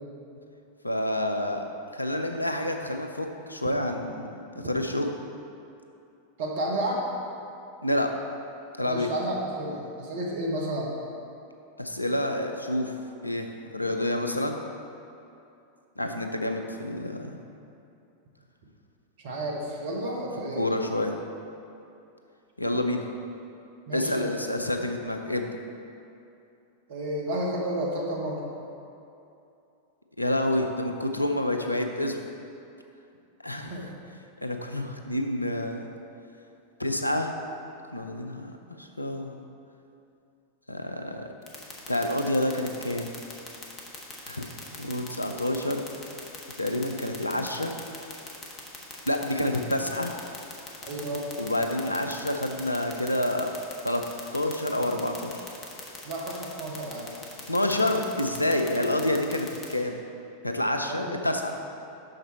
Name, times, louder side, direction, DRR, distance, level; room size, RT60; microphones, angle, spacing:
voice 1, 0.8-1.7 1.9-5.1 7.8-8.1 8.8-9.1 11.8-13.0 13.2-13.5 13.7-14.6 16.0-17.4 20.6-21.2 22.6-23.1 23.9-25.6 30.2-32.2 33.4-33.7 34.4-35.9 36.8-37.3 37.9-39.4 40.7-41.2 41.9-43.1 44.2-44.5 44.8-45.8 46.6-47.7 49.1-50.1 51.4-53.6 53.8-54.0 54.3-55.4 57.5-60.0 60.4-61.5, left 1 dB, 85° left, 5 dB, 0.5 m, -28 dB
voice 2, 6.4-7.0 8.8-10.9 19.2-20.6 23.9-24.3 26.9-28.4 33.5-33.8 50.8-51.3 56.0-57.1 58.8-58.9 60.8-61.1, right 1 dB, 55° right, -2 dB, 1.3 m, -31 dB
sound 1, 41.5-59.7, left 4 dB, 30° left, 1.2 m, -40 dB
6.6 x 6.1 x 4.4 m, 2.7 s
figure-of-eight pair, 90°, 0 cm